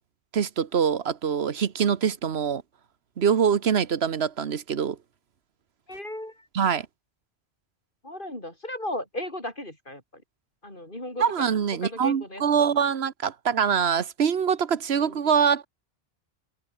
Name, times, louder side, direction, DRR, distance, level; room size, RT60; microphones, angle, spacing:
voice 1, 0.3-2.6 3.2-5.0 6.5-6.9 11.2-15.7, right 7 dB, 85° right, 1.3 m, -24 dB
voice 2, 5.9-6.5 8.0-10.2 10.6-11.2 11.7-12.7 15.0-15.2, left 1 dB, 55° left, 8.2 m, -36 dB
omnidirectional pair, 1.0 m